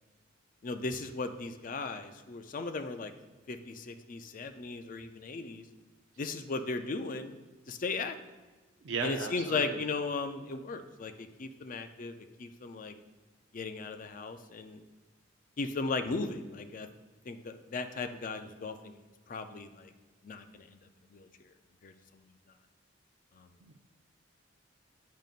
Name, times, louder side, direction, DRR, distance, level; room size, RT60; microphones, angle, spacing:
voice 1, 0.6-3.1 3.5-5.6 6.2-7.3 7.7-8.2 9.0-12.9 13.5-14.8 15.6-16.9 17.3-19.0 19.3-19.9 20.2-20.8 21.1-21.3 21.8-22.2 23.4-23.5, left 3 dB, 40° left, 7 dB, 0.4 m, -37 dB
voice 2, 8.8-9.8 23.6-23.7, right 4 dB, 70° right, 3 dB, 0.5 m, -36 dB
9.2 x 5.2 x 2.4 m, 1.3 s
head